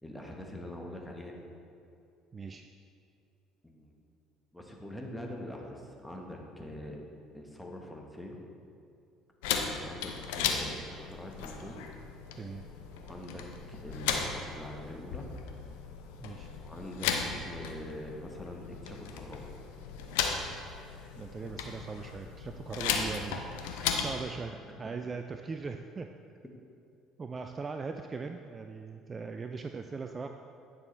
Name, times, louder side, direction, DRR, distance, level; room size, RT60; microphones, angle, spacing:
voice 1, 0.0-1.3 3.6-3.9 4.5-7.0 7.3-8.4 9.7-11.8 13.0-15.3 16.5-17.2 17.4-19.5, left 1 dB, 5° left, 0 dB, 1.4 m, -44 dB
voice 2, 2.3-2.7 12.3-12.6 16.2-16.5 21.1-26.1 27.2-30.3, right 4 dB, 30° right, 6 dB, 0.4 m, -40 dB
sound 1, 9.4-24.2, left 6 dB, 70° left, 0.6 m, -36 dB
9.5 x 6.2 x 3.3 m, 2.5 s
hypercardioid pair, 60°, 0 cm